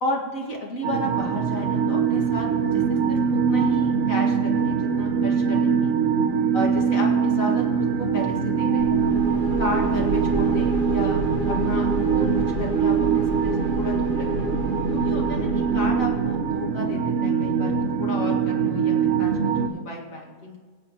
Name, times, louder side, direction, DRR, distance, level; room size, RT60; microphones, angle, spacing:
voice 1, 0.0-5.9 6.5-9.0 9.6-11.2 11.5-14.5 14.9-20.6, left 1 dB, 55° left, -1 dB, 2.3 m, -33 dB
sound 1, 0.8-19.7, right 6 dB, 50° right, 1.3 m, -23 dB
sound 2, 8.8-16.5, right 1 dB, 80° left, 2.3 m, -30 dB
20.0 x 8.1 x 3.0 m, 1.5 s
omnidirectional pair, 1.8 m